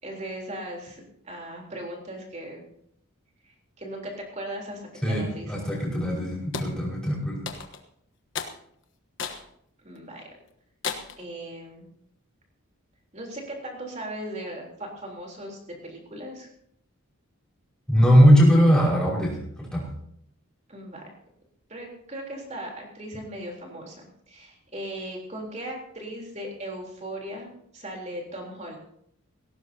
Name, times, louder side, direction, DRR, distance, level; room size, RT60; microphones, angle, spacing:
voice 1, 0.0-2.6 3.4-5.7 9.8-10.3 11.2-11.9 13.1-16.5 20.7-21.0 21.7-28.8, right 1 dB, 30° right, 0 dB, 3.6 m, -38 dB
voice 2, 5.0-7.5 17.9-19.9, equal, 5° left, -5 dB, 5.3 m, -20 dB
sound 1, 6.5-6.7 7.5-7.9 8.3-8.6 9.2-9.5 10.0-10.1 10.8-11.2, left 5 dB, 55° left, 1.2 m, -33 dB
18.5 x 17.0 x 2.8 m, 0.70 s
head